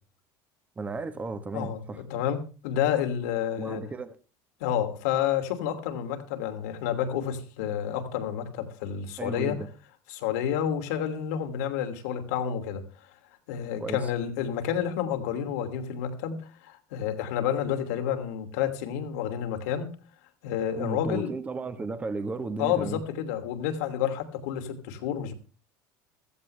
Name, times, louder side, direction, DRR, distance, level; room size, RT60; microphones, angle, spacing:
voice 1, 0.8-2.0 3.6-4.2 9.2-9.7 13.8-14.1 20.7-23.0, right 3 dB, 15° right, 1.3 m, -34 dB
voice 2, 1.5-3.8 4.6-9.6 10.1-12.8 13.5-19.9 20.4-21.3 22.6-25.3, left 9 dB, 90° left, 2.7 m, -30 dB
15.5 x 14.5 x 3.3 m
cardioid pair, 135°, 8 cm